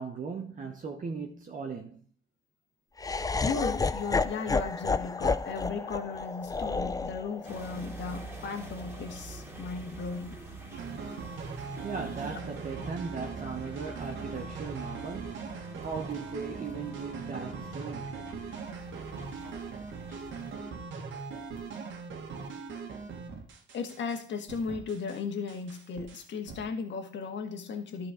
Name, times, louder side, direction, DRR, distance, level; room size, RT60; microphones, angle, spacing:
voice 1, 0.0-2.0 11.8-18.2, right 5 dB, 40° right, 1.1 m, -38 dB
Laughter, 3.0-9.1, left 4 dB, 20° left, 0.5 m, -31 dB
voice 2, 3.4-10.4 23.7-28.1, left 5 dB, 65° left, 1.7 m, -36 dB
sound 1, 7.4-20.5, right 3 dB, 15° right, 2.7 m, -45 dB
sound 2, 10.7-24.2 24.5-25.2 25.5-26.6, right 5 dB, 75° right, 1.7 m, -41 dB
11.5 x 4.6 x 5.0 m
cardioid pair, 90°, 20 cm